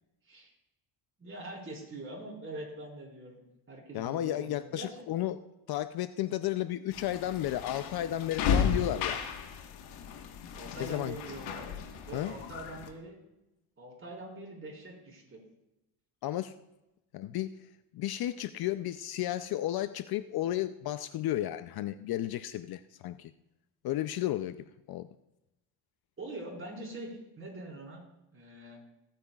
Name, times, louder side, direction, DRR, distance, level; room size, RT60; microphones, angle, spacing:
voice 1, 1.2-3.4 3.7-5.1 10.5-11.7 12.1-13.2 13.8-15.4 26.2-28.0 28.3-28.8, right 2 dB, 25° right, -2 dB, 4.7 m, -43 dB
voice 2, 3.9-5.4 5.7-9.3 10.8-11.1 12.1-12.3 16.2-16.5 17.1-17.7 17.9-23.3 23.8-25.1, left 13 dB, 55° left, 12 dB, 0.6 m, -33 dB
sound 1, 6.9-12.9, left 7 dB, 80° left, 1.5 m, -34 dB
20.0 x 8.8 x 2.4 m, 0.93 s
cardioid pair, 100°, 46 cm